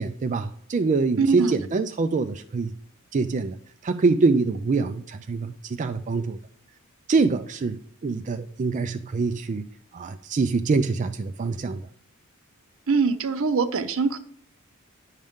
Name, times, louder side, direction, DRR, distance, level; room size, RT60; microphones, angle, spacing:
voice 1, 0.0-2.7 3.1-3.6 3.8-6.4 7.1-9.7 9.9-11.8, right 4 dB, 35° right, 8 dB, 0.4 m, -25 dB
voice 2, 1.2-1.6 12.9-14.2, right 4 dB, 65° right, 11 dB, 0.7 m, -23 dB
10.5 x 6.5 x 3.6 m, 0.63 s
head